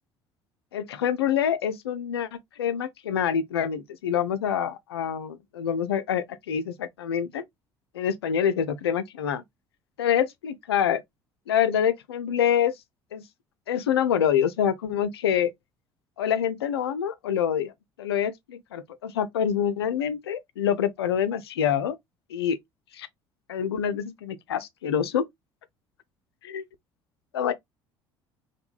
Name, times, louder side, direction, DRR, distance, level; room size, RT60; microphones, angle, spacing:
voice 1, 0.7-7.4 7.9-9.4 10.0-11.0 11.5-12.7 13.1-13.2 13.7-15.5 16.2-17.7 18.0-22.0 22.3-22.6 22.9-23.1 23.5-25.3 26.4-26.6 27.3-27.5, left 8 dB, 80° left, 0.4 m, -26 dB
4.4 x 2.2 x 2.3 m
figure-of-eight pair, 60°, 13 cm